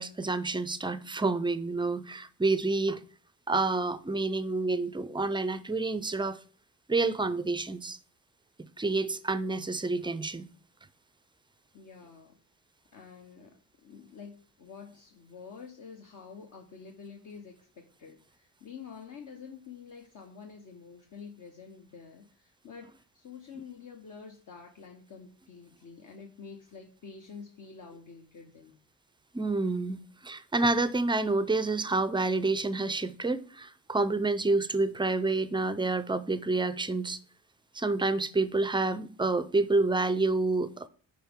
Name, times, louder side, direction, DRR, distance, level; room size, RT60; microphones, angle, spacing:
voice 1, 0.0-3.0 3.5-6.4 6.9-8.0 8.8-10.5 29.3-37.2 37.8-40.9, right 3 dB, 15° right, 0.4 m, -28 dB
voice 2, 11.7-12.4 12.9-13.6 13.8-22.9 23.1-28.8, left 6 dB, 60° left, 1.2 m, -48 dB
10.0 x 4.9 x 3.6 m
cardioid pair, 140°, 36 cm